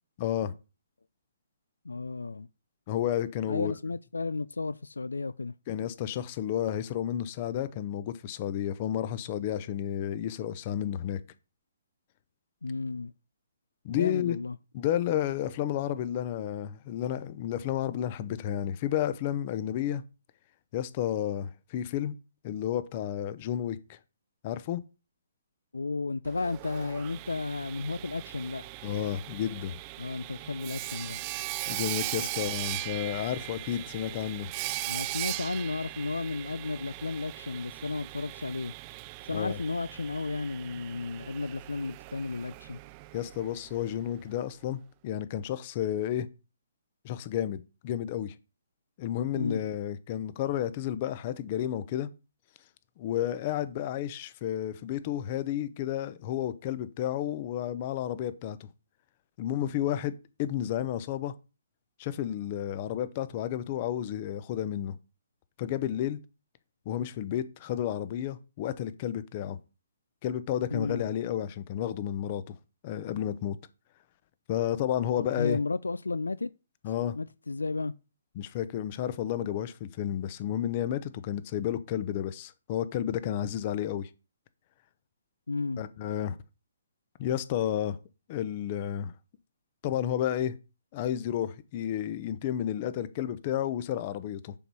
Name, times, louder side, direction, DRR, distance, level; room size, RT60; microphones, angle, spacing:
voice 1, 0.2-0.5 2.9-3.7 5.7-11.2 13.8-14.4 14.7-20.0 20.7-22.1 22.4-24.0 24.4-24.8 28.8-29.8 31.7-34.5 39.3-39.6 43.1-46.3 47.0-48.3 49.0-52.1 53.0-58.7 59.4-60.1 60.4-61.3 62.0-65.0 65.6-66.2 66.9-69.6 70.2-72.6 72.8-73.6 74.5-75.6 76.8-77.2 78.4-84.1 85.8-86.4 87.2-88.0 88.3-89.1 89.8-90.6 90.9-94.5, left 11 dB, 40° left, 0.8 m, -31 dB
voice 2, 1.8-2.5 3.5-5.5 12.6-13.1 13.9-14.6 25.7-28.7 30.0-31.2 32.2-32.3 34.9-38.7 39.2-42.8 49.3-49.6 70.7-71.0 75.2-76.5 77.2-77.9 85.5-85.8, left 3 dB, 90° left, 0.3 m, -33 dB
Sawing, 26.2-44.1, right 19 dB, 30° right, 0.4 m, -39 dB
7.0 x 5.4 x 4.7 m
hypercardioid pair, 140°, 0 cm